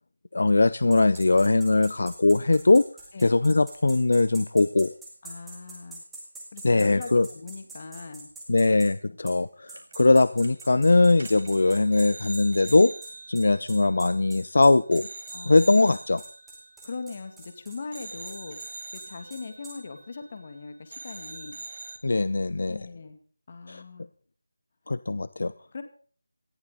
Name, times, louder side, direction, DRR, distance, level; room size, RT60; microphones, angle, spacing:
voice 1, 0.3-2.9 3.2-4.9 6.6-7.3 8.5-12.9 13.3-15.1 15.5-16.2 22.0-22.8 23.7-23.8 24.9-25.5, left 3 dB, 60° left, 16 dB, 0.7 m, -21 dB
sound 1, 0.9-8.9 9.3-9.4 9.7-19.8, right 2 dB, 5° right, 2.5 m, -44 dB
voice 2, 5.2-6.0 6.5-8.3 8.9-9.2 15.3-15.8 16.8-18.6 18.9-21.6 22.7-23.2 23.5-24.1 25.7-25.8, left 4 dB, 35° left, 8 dB, 2.4 m, -40 dB
sound 2, 9.8-10.2 10.4-10.7 11.1-14.5 14.9-17.5 17.9-20.6 20.9-22.0, right 3 dB, 50° right, 3.1 m, -43 dB
18.5 x 14.0 x 4.0 m, 0.43 s
figure-of-eight pair, 175°, 0 cm